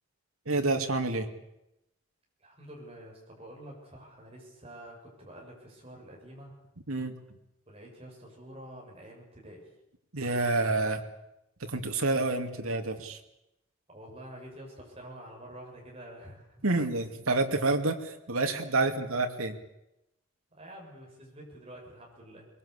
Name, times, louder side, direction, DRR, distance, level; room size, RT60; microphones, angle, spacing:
voice 1, 0.5-1.3 6.9-7.2 10.1-11.0 11.7-13.2 16.6-19.6, right 2 dB, 90° right, 6 dB, 2.5 m, -28 dB
voice 2, 2.4-6.5 7.7-9.7 13.9-16.6 18.5-18.6 18.9-19.0 20.5-22.5, right 1 dB, 30° right, -1 dB, 7.0 m, -48 dB
22.5 x 21.5 x 8.3 m, 0.88 s
head